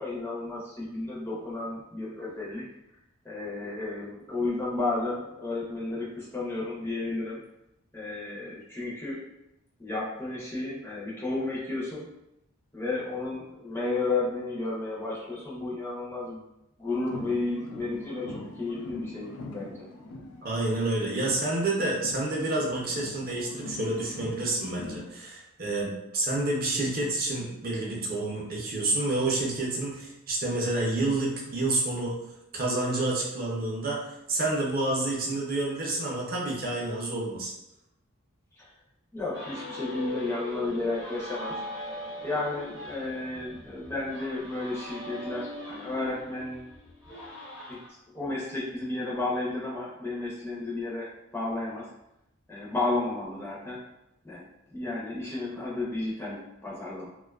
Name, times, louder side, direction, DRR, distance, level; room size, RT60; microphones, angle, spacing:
voice 1, 0.0-2.7 3.2-7.4 7.9-9.2 9.8-12.1 12.7-16.4 16.8-19.9 38.6-38.7 39.1-41.9 42.2-46.7 47.7-47.8 48.1-51.9 52.5-53.8 54.2-57.1, left 2 dB, 10° left, -6 dB, 0.4 m, -32 dB
sound 1, 17.0-20.9 21.1-25.1, left 2 dB, 90° left, 0.4 m, -42 dB
voice 2, 20.4-32.2 32.5-37.5, right 2 dB, 45° right, -3 dB, 0.5 m, -29 dB
sound 2, 39.3-47.9, left 1 dB, 55° left, 0.7 m, -40 dB
2.5 x 2.2 x 2.2 m, 0.87 s
head